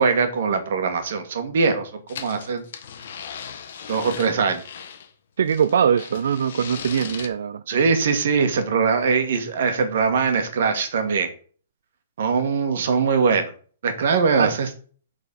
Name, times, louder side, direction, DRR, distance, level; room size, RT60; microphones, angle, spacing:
voice 1, 0.0-2.6 3.9-4.6 7.7-11.3 12.2-13.5 13.8-14.7, right 5 dB, 65° right, 1.5 m, -21 dB
sound 1, 2.1-5.1 5.5-7.3, left 7 dB, 60° left, 1.1 m, -37 dB
voice 2, 5.4-7.6 14.4-14.6, right 7 dB, 80° right, 0.4 m, -22 dB
6.8 x 4.1 x 5.3 m
hypercardioid pair, 160°, 0 cm